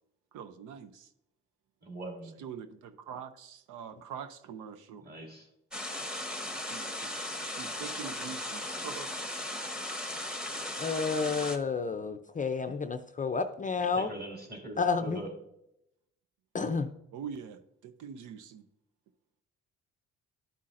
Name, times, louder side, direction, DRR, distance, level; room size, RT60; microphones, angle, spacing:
voice 1, 0.3-1.1 2.4-5.0 6.7-9.1 17.1-18.6, right 7 dB, 85° right, 9 dB, 0.6 m, -44 dB
voice 2, 1.8-2.4 5.0-5.5 12.7-12.8 13.9-15.3, right 2 dB, 30° right, 0 dB, 2.3 m, -42 dB
sound 1, 5.7-11.6, left 1 dB, 5° right, 1.0 m, -37 dB
voice 3, 10.8-14.1 14.8-15.2 16.5-16.9, left 4 dB, 25° left, 8 dB, 0.5 m, -30 dB
11.5 x 5.5 x 2.5 m, 0.82 s
cardioid pair, 90°, 30 cm